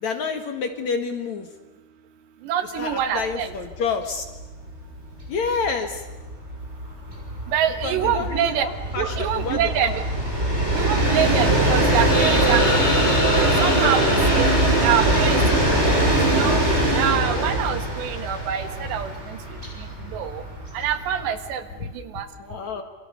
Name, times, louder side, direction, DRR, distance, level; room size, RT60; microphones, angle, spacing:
voice 1, 0.0-1.5 2.8-4.2 5.3-6.0 7.8-10.0 21.8-21.9 22.4-22.8, left 5 dB, 55° left, 6 dB, 2.5 m, -28 dB
voice 2, 2.5-3.5 7.5-8.7 9.0-9.9 10.7-12.6 13.6-14.5 14.8-15.4 16.3-16.6 16.9-19.4 20.1-20.4 20.7-21.6 22.1-22.3, right 9 dB, 85° right, 9 dB, 3.9 m, -25 dB
Train, 3.3-3.4 3.7-3.8 4.1-21.5, right 1 dB, 15° right, 7.0 m, -22 dB
sound 1, 12.1-15.9, left 2 dB, 25° left, 1.0 m, -29 dB
28.0 x 26.5 x 6.8 m, 1.2 s
omnidirectional pair, 4.9 m